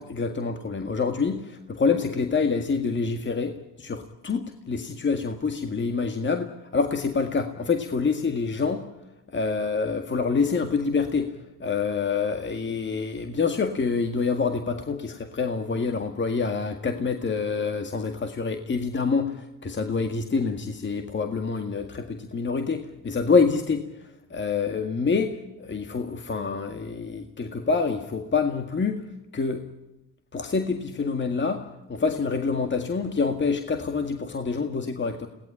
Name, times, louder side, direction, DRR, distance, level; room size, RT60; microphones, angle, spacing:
voice 1, 0.0-8.8 9.3-11.3 11.6-29.0 29.3-29.6 30.3-35.3, left 4 dB, 35° left, 6 dB, 1.9 m, -26 dB
22.0 x 18.0 x 9.9 m, 0.96 s
cardioid pair, 95°, 33 cm